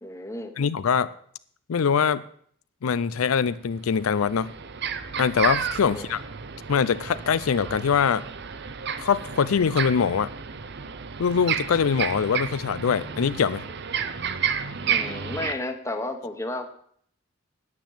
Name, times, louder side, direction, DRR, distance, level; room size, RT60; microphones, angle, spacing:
voice 1, 0.0-0.5 5.9-6.1 14.8-16.7, left 2 dB, 15° left, 5 dB, 1.2 m, -32 dB
voice 2, 0.6-1.1 1.7-2.2 2.8-4.5 5.2-6.2 6.7-8.2 9.0-10.3 11.2-13.6, left 6 dB, 80° left, 15 dB, 0.4 m, -23 dB
sound 1, 3.5-3.6 3.9-15.5, right 7 dB, 50° right, 0.7 m, -31 dB
9.7 x 9.1 x 7.4 m, 0.62 s
head